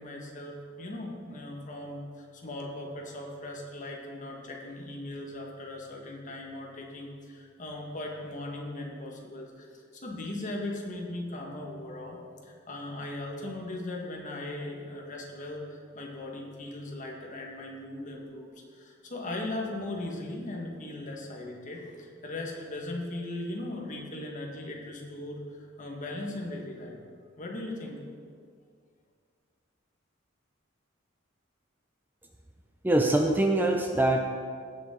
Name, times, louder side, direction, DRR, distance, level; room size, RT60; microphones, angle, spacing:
voice 1, 0.0-9.7 9.9-27.0 27.4-28.0, left 1 dB, 40° left, 0 dB, 1.7 m, -38 dB
voice 2, 32.8-34.2, right 1 dB, 10° right, 3 dB, 0.5 m, -23 dB
17.0 x 6.7 x 3.9 m, 2.1 s
head